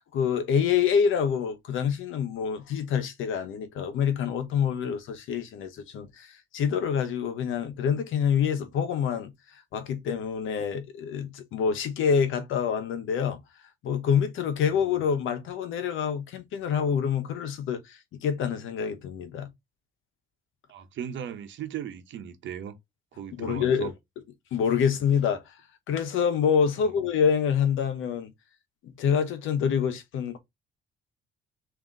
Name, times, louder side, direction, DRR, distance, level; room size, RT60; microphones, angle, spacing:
voice 1, 0.1-13.4 13.8-19.5 23.4-23.9 24.5-25.5 25.9-28.3 28.8-30.4, left 7 dB, 80° left, 0.9 m, -26 dB
voice 2, 20.7-22.8 23.1-23.9, right 9 dB, 70° right, 0.9 m, -37 dB
3.7 x 2.8 x 4.0 m
cardioid pair, 90°, 20 cm